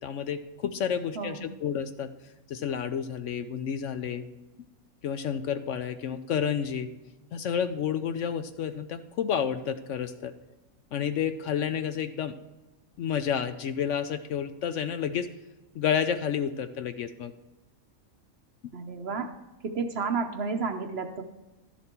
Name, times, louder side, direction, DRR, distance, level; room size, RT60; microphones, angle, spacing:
voice 1, 0.0-2.1 2.5-4.2 5.0-6.9 7.3-10.3 10.9-12.4 13.0-15.3 15.7-17.3, left 8 dB, 70° left, 10 dB, 0.8 m, -30 dB
voice 2, 1.2-1.5 18.7-19.3 19.6-21.2, right 4 dB, 55° right, 7 dB, 0.9 m, -31 dB
12.0 x 7.2 x 4.4 m, 1.1 s
omnidirectional pair, 1.5 m